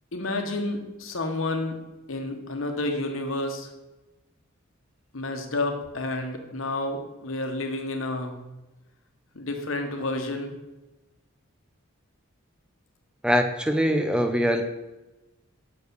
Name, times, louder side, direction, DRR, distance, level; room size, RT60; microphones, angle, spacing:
voice 1, 0.1-1.8 2.1-3.7 5.1-8.4 9.3-10.5, left 2 dB, 75° left, 4 dB, 1.2 m, -30 dB
voice 2, 13.2-14.6, equal, 5° right, 6 dB, 0.5 m, -23 dB
6.7 x 4.5 x 6.8 m, 1.1 s
head